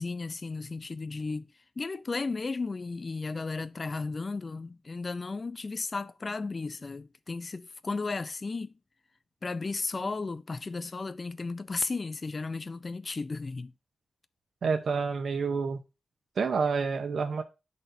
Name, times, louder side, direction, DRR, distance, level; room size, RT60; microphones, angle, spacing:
voice 1, 0.0-1.5 1.8-8.7 9.4-13.7, left 3 dB, 40° left, 0.3 m, -34 dB
voice 2, 14.6-15.8 16.4-17.4, right 5 dB, 75° right, 0.7 m, -28 dB
11.5 x 4.1 x 2.6 m
wide cardioid pair, 105°, 0 cm